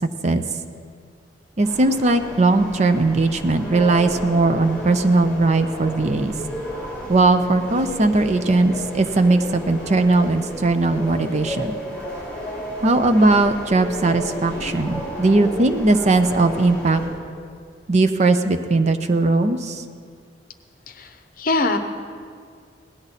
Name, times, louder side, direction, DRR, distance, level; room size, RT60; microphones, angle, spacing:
sound 1, 1.6-17.1, equal, 10° left, 3.6 m, -33 dB
voice 1, 1.6-6.3 7.1-11.7 12.8-17.0 17.9-19.8, right 2 dB, 40° right, 8 dB, 0.6 m, -19 dB
voice 2, 20.9-21.8, left 2 dB, 50° left, 7 dB, 0.8 m, -23 dB
17.5 x 11.0 x 4.1 m, 2.1 s
head